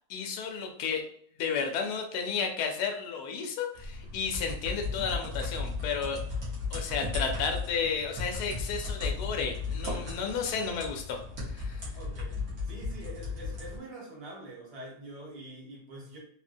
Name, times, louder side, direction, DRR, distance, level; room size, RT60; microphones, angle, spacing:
voice 1, 0.1-1.0 1.4-6.2 6.7-11.2 11.5-11.9, left 6 dB, 75° left, 3 dB, 1.1 m, -32 dB
sound 1, 3.7-13.8, left 3 dB, 60° right, 1.4 m, -36 dB
voice 2, 11.9-16.2, right 1 dB, 25° right, -4 dB, 0.9 m, -45 dB
3.7 x 2.1 x 2.5 m, 0.62 s
omnidirectional pair, 1.8 m